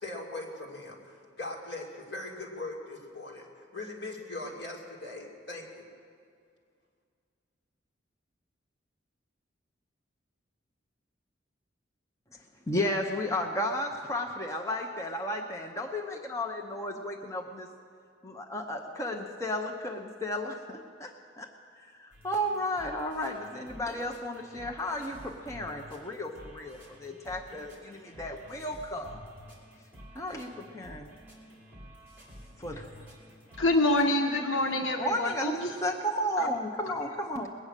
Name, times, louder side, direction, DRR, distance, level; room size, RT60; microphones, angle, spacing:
voice 1, 0.0-5.9, left 2 dB, 60° left, -1 dB, 2.5 m, -40 dB
voice 2, 12.7-17.7 18.2-21.5 22.0-29.2 30.1-31.1 32.6-32.9 35.0-37.5, left 1 dB, 15° left, 2 dB, 0.7 m, -33 dB
sound 1, 22.1-34.1, equal, 10° right, 3.1 m, -51 dB
voice 3, 33.6-35.8 36.4-36.5 36.9-37.0, left 2 dB, 85° left, 3 dB, 1.0 m, -26 dB
21.0 x 8.6 x 6.6 m, 2.2 s
head